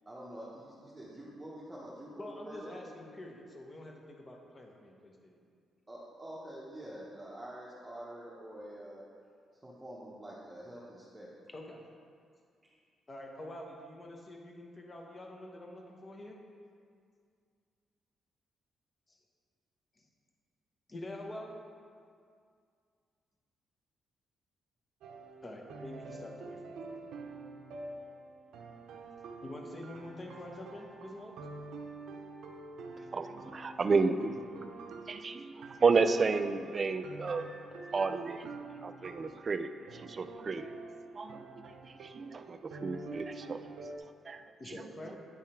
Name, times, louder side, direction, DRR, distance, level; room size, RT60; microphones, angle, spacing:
voice 1, 0.1-2.8 5.9-9.0 9.5-11.5 12.6-12.7, right 1 dB, 15° right, -8 dB, 1.0 m, -47 dB
voice 2, 2.2-5.4 11.5-11.8 13.1-16.4 19.1-19.2 20.0-20.1 20.9-21.6 25.4-27.1 29.4-31.5 44.6-45.2, left 1 dB, 30° left, 1 dB, 1.0 m, -46 dB
sound 1, 25.0-44.0, right 3 dB, 85° right, 0.6 m, -47 dB
voice 3, 33.1-34.4 35.1-37.5 37.9-38.5 38.8-39.7 40.0-40.7 41.2-41.5 42.1-43.6 44.3-44.4, right 4 dB, 35° right, 9 dB, 0.3 m, -31 dB
9.7 x 3.5 x 4.4 m, 2.2 s
cardioid pair, 110°, 0 cm